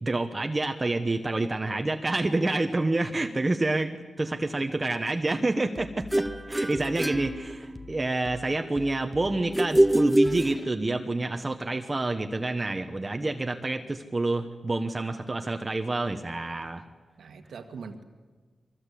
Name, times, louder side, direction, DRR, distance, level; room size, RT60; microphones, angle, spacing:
voice 1, 0.0-16.8, right 2 dB, 25° right, 6 dB, 1.2 m, -28 dB
sound 1, 5.7-10.7, left 2 dB, 20° left, 1.3 m, -45 dB
sound 2, 6.1-8.1 9.5-11.1, right 1 dB, 5° right, 0.9 m, -25 dB
voice 2, 6.8-7.2 17.2-18.0, right 5 dB, 80° right, 7 dB, 2.0 m, -43 dB
23.0 x 23.0 x 8.5 m, 1.4 s
wide cardioid pair, 105°, 0 cm